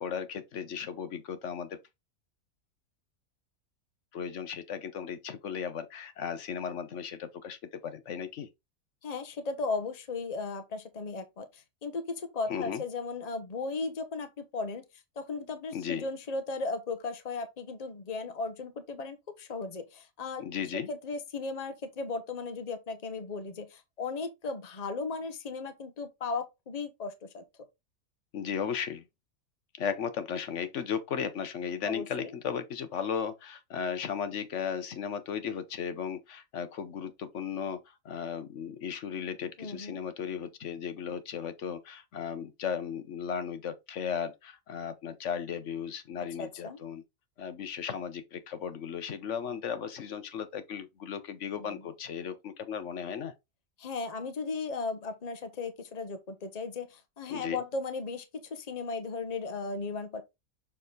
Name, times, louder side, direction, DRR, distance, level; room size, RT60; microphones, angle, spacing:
voice 1, 0.0-1.8 4.1-8.5 12.5-12.8 15.7-16.1 20.4-20.9 28.3-29.0 29.8-47.0 47.4-53.3 57.3-57.6, left 7 dB, 60° left, 1.2 m, -36 dB
voice 2, 9.0-14.8 15.2-20.4 20.7-27.4 31.8-32.3 39.6-40.0 46.4-46.8 51.6-51.8 53.8-60.2, left 4 dB, 35° left, 0.9 m, -36 dB
6.7 x 3.6 x 3.9 m
omnidirectional pair, 1.4 m